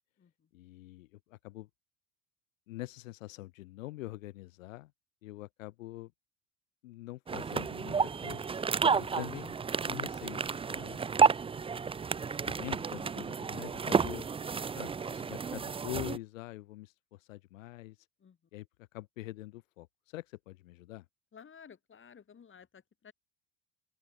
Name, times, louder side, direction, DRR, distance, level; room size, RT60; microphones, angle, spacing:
voice 1, 0.5-1.7 2.7-4.9 5.2-6.1 6.8-8.5 9.0-9.6 9.9-11.0 12.4-14.3 14.7-18.1 18.5-21.0, left 17 dB, 75° left, 4.2 m, -44 dB
sound 1, 7.3-16.2, right 5 dB, 15° right, 0.6 m, -31 dB
voice 2, 21.3-23.1, left 7 dB, 30° left, 6.1 m, -54 dB
open air
hypercardioid pair, 75°, 39 cm